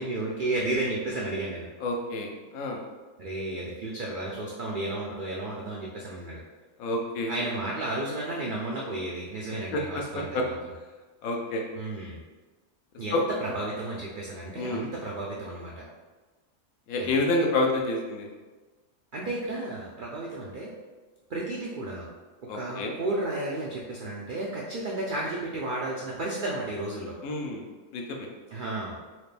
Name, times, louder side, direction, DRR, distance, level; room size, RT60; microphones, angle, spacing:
voice 1, 0.0-1.7 3.2-6.4 7.3-10.5 11.8-12.2 13.0-15.8 17.0-17.1 19.1-20.7 21.3-22.1 22.5-27.2 28.5-28.9, right 2 dB, 75° right, -3 dB, 0.4 m, -33 dB
voice 2, 1.8-2.8 6.8-7.3 9.7-9.8 10.3-10.4 11.2-11.6 13.1-13.2 14.6-14.8 16.9-18.3 22.5-22.9 27.2-27.6 27.9-28.3, left 2 dB, 75° left, 1 dB, 1.1 m, -28 dB
4.3 x 2.5 x 3.3 m, 1.3 s
omnidirectional pair, 1.5 m